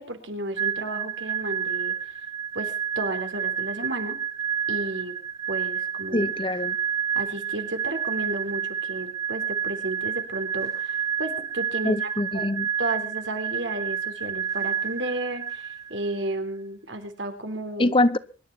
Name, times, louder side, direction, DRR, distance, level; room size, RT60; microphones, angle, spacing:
voice 1, 0.0-1.9 2.5-4.2 4.7-5.2 5.5-6.3 7.1-12.5 12.8-17.9, right 1 dB, 90° right, 6 dB, 3.6 m, -33 dB
sound 1, 0.6-16.2, right 7 dB, 20° right, 1.2 m, -30 dB
voice 2, 6.1-6.8 11.8-12.7 17.8-18.2, left 2 dB, 25° left, 15 dB, 0.9 m, -23 dB
24.0 x 11.5 x 4.3 m, 0.37 s
head